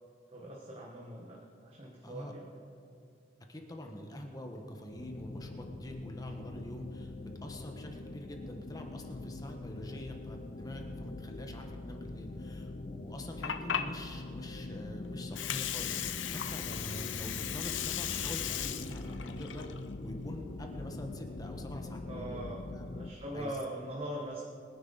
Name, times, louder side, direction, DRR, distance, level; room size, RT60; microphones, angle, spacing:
voice 1, 0.3-2.4 22.1-22.6 22.9-24.4, right 1 dB, 30° right, -2 dB, 1.3 m, -41 dB
voice 2, 3.5-7.1 7.4-22.9 23.3-23.5, equal, 20° left, 3 dB, 1.3 m, -45 dB
sound 1, 4.9-23.1, left 2 dB, 45° left, 0.5 m, -43 dB
Water, 13.1-21.0, left 9 dB, 85° left, 0.7 m, -38 dB
22.0 x 10.0 x 4.0 m, 2.5 s
head